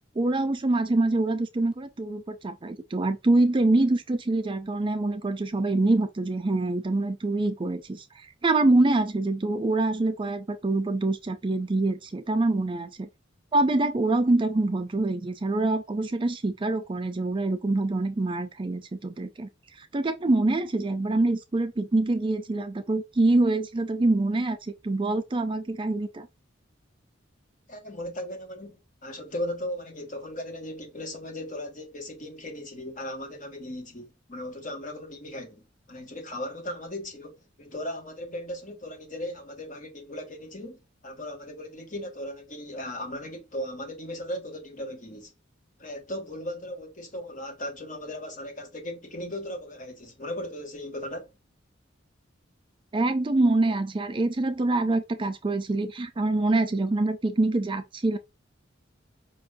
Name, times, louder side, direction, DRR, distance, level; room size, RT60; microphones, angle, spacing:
voice 1, 0.2-13.1 13.5-19.5 19.8-26.3 52.9-58.2, right 2 dB, 25° right, 0.4 m, -25 dB
voice 2, 27.7-35.6 35.9-40.8 41.0-45.3 45.8-51.3, left 1 dB, 45° left, 1.2 m, -37 dB
5.3 x 2.6 x 3.6 m
head